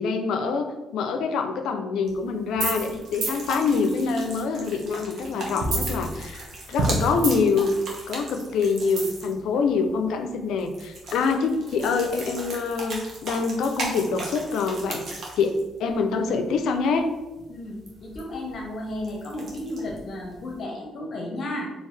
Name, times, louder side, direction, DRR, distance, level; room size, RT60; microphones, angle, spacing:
voice 1, 0.0-6.4 6.7-7.7 8.1-15.0 15.4-15.5 15.8-17.1, left 5 dB, 80° left, 6 dB, 0.4 m, -25 dB
sound 1, 2.0-20.6, right 2 dB, 60° right, 1.1 m, -39 dB
sound 2, 2.5-2.9 3.2-3.4 5.6-6.5 6.8-7.6 9.0-9.3, right 2 dB, 80° right, 0.9 m, -26 dB
voice 2, 17.5-21.7, left 1 dB, 55° left, -1 dB, 0.8 m, -33 dB
4.6 x 2.8 x 3.2 m, 1.1 s
cardioid pair, 90°, 0 cm